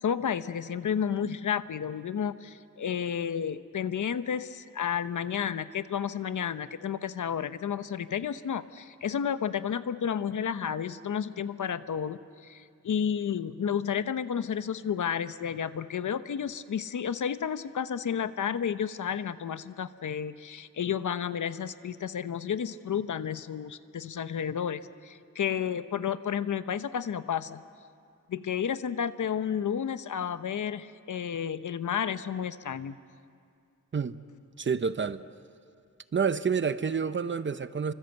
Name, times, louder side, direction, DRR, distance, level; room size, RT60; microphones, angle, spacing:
voice 1, 0.0-27.6 28.3-33.0, left 8 dB, 75° left, 12 dB, 0.9 m, -31 dB
voice 2, 34.6-35.2 36.1-37.9, right 6 dB, 40° right, 13 dB, 0.7 m, -28 dB
30.0 x 25.0 x 8.0 m, 2.3 s
wide cardioid pair, 135°, 31 cm